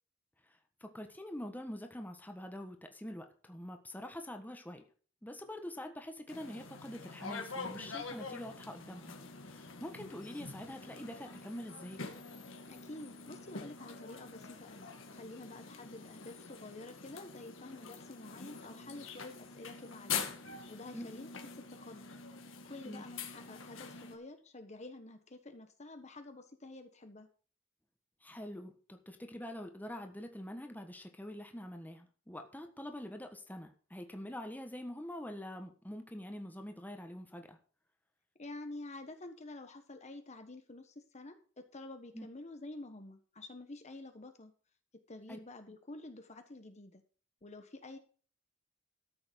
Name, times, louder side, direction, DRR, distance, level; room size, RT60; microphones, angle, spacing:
voice 1, 0.5-4.8 5.2-9.2 9.5-12.0 20.9-21.1 22.8-23.0 28.2-37.6 42.1-42.3 45.3-45.4, left 1 dB, 10° left, 5 dB, 1.4 m, -45 dB
sound 1, 6.3-24.2, left 5 dB, 75° left, 2.0 m, -45 dB
voice 2, 12.7-20.3 20.7-21.3 21.5-22.2 22.6-27.3 38.4-44.5 45.1-47.0 47.4-48.0, left 2 dB, 35° left, 7 dB, 1.2 m, -49 dB
13.0 x 7.0 x 5.2 m, 0.41 s
head